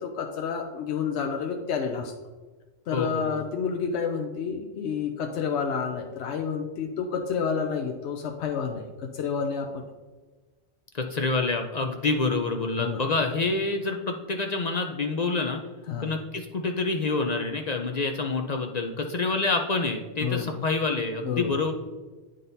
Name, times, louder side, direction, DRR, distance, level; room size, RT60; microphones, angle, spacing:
voice 1, 0.0-2.1 2.9-9.9 12.8-13.0 15.9-16.1 20.2-20.5 21.3-21.5, left 6 dB, 85° left, 3 dB, 0.9 m, -29 dB
voice 2, 2.9-3.4 10.9-15.6 16.0-21.7, left 3 dB, 50° left, 4 dB, 0.6 m, -27 dB
9.2 x 3.9 x 4.0 m, 1.3 s
omnidirectional pair, 1.1 m